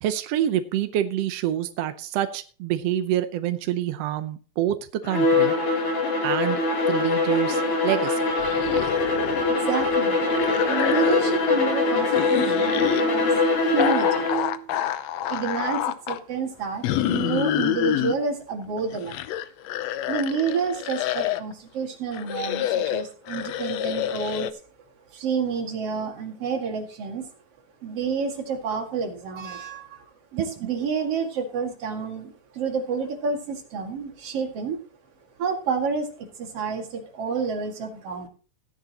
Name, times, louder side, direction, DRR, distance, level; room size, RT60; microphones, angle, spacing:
voice 1, 0.0-5.5 6.2-6.6 6.9-8.3, right 11 dB, 75° right, 10 dB, 1.4 m, -27 dB
Bowed string instrument, 5.0-14.5, left 3 dB, 45° left, 3.4 m, -23 dB
sound 1, 8.4-9.5 9.8-11.5 12.1-13.0 13.8-16.2 16.8-18.1 18.8-21.5 22.1-24.5, left 12 dB, 75° left, 1.6 m, -28 dB
voice 2, 9.5-10.2 10.7-13.3 13.6-14.3 15.3-19.2 20.1-24.5 25.1-27.3 27.8-34.8 35.4-38.3, right 5 dB, 50° right, 2 dB, 2.9 m, -29 dB
16.5 x 10.5 x 2.9 m, 0.36 s
omnidirectional pair, 3.8 m